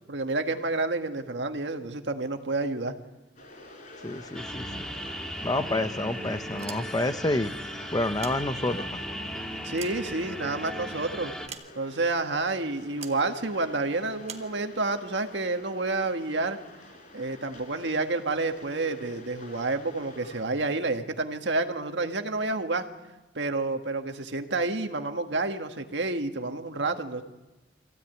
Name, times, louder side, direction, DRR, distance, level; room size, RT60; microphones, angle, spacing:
voice 1, 0.1-2.9 9.6-11.3 11.7-16.6 17.1-22.9 23.3-27.2, right 3 dB, 75° right, 6 dB, 1.7 m, -29 dB
sound 1, 3.4-20.5, left 2 dB, 45° left, 4.6 m, -49 dB
voice 2, 4.0-4.7 5.4-7.5 7.9-9.0, left 2 dB, 20° left, 11 dB, 0.8 m, -28 dB
sound 2, 4.3-11.5, equal, 5° left, 1.9 m, -37 dB
sound 3, 6.6-7.3 8.0-9.0 9.5-10.7 11.5-12.1 13.0-13.3 14.2-14.6, right 7 dB, 35° right, 1.5 m, -44 dB
25.0 x 16.0 x 9.2 m, 1.1 s
head